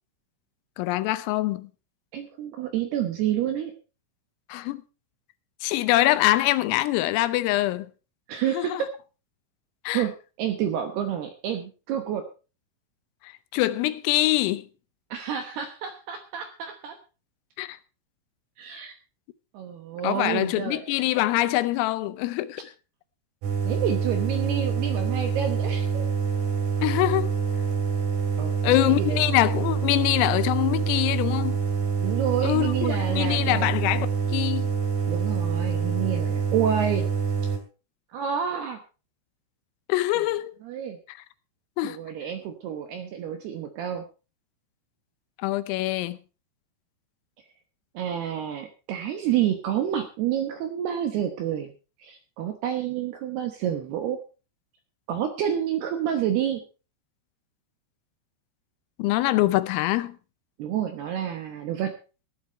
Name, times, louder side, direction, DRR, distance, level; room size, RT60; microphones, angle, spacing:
voice 1, 0.8-1.7 4.5-4.8 5.6-7.9 8.5-8.8 9.8-10.0 13.2-14.6 17.6-17.8 20.0-22.7 26.8-27.3 28.6-31.6 32.4-34.7 39.9-40.5 41.1-41.2 41.8-42.0 45.4-46.2 59.0-60.2, left 16 dB, 85° left, 3.4 m, -24 dB
voice 2, 2.1-3.7 8.3-8.9 9.9-12.3 15.1-17.0 18.6-18.9 19.5-20.9 23.6-26.1 28.4-29.2 32.0-33.7 35.1-37.1 38.1-38.8 40.6-41.0 41.8-44.0 47.9-51.7 52.0-54.2 55.1-56.6 60.6-61.9, right 9 dB, 75° right, 2.5 m, -29 dB
sound 1, 23.4-37.6, right 6 dB, 50° right, 3.4 m, -26 dB
15.0 x 11.5 x 4.4 m
omnidirectional pair, 6.0 m